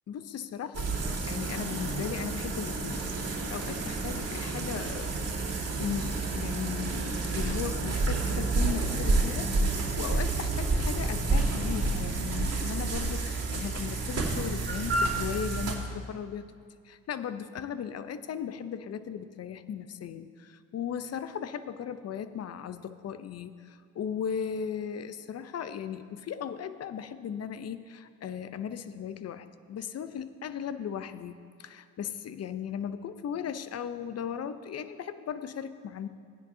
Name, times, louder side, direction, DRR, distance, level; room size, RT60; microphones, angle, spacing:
voice 1, 0.1-5.2 5.8-16.5 16.8-36.1, left 8 dB, 45° left, 12 dB, 0.6 m, -37 dB
sound 1, 0.7-15.8, right 3 dB, 40° right, 2.5 m, -29 dB
15.5 x 10.0 x 2.7 m, 2.1 s
supercardioid pair, 65°, 37 cm